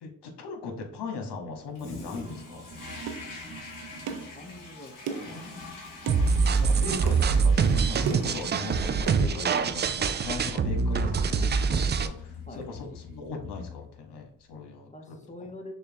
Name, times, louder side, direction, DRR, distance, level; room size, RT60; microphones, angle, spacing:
voice 1, 0.0-2.6 5.2-5.5 6.0-15.2, left 4 dB, 75° left, 3 dB, 1.1 m, -39 dB
Toilet flush, 1.7-14.1, left 2 dB, 50° left, 1.5 m, -44 dB
sound 1, 3.1-3.3 4.1-4.3 5.1-5.4 6.1-6.3 7.1-7.2 8.1-8.4 9.1-9.2 10.1-10.2, right 6 dB, 60° right, 0.7 m, -35 dB
voice 2, 4.3-5.3 12.5-12.7 14.9-15.7, left 1 dB, 15° left, 4 dB, 0.9 m, -44 dB
sound 2, 6.1-12.1, right 5 dB, 25° right, 0.3 m, -24 dB
6.4 x 2.2 x 2.6 m, 0.66 s
supercardioid pair, 55°, 42 cm